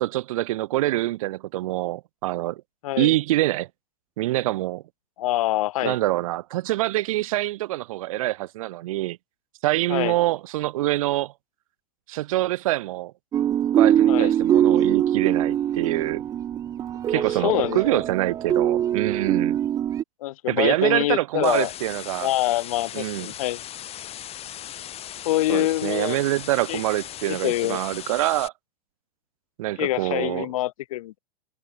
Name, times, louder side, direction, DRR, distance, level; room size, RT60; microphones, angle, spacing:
voice 1, 0.0-2.6 3.0-3.7 4.2-4.8 5.8-9.2 9.6-11.3 12.1-13.1 13.8-16.2 17.1-19.6 20.5-22.3 22.9-23.3 25.5-28.5 29.6-30.5, right 16 dB, 60° right, 1.2 m, -25 dB
voice 2, 2.8-3.1 5.2-6.0 9.9-10.1 14.1-14.3 17.1-18.0 20.2-21.7 22.2-23.6 25.2-26.2 26.7-26.8 27.3-27.8 29.8-31.2, left 15 dB, 60° left, 1.0 m, -25 dB
sound 1, 13.3-20.0, right 10 dB, 15° right, 0.3 m, -22 dB
sound 2, 21.4-28.5, left 11 dB, 30° left, 2.0 m, -38 dB
figure-of-eight pair, 95°, 20 cm